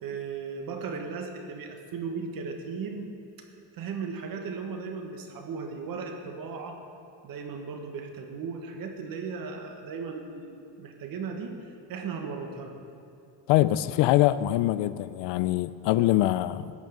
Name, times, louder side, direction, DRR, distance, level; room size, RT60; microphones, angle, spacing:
voice 1, 0.0-3.1 3.7-6.8 7.2-12.9, right 5 dB, 50° right, 1.7 m, -36 dB
voice 2, 13.5-16.7, left 15 dB, 75° left, 0.6 m, -23 dB
14.0 x 6.5 x 9.4 m
cardioid pair, 165°, 43 cm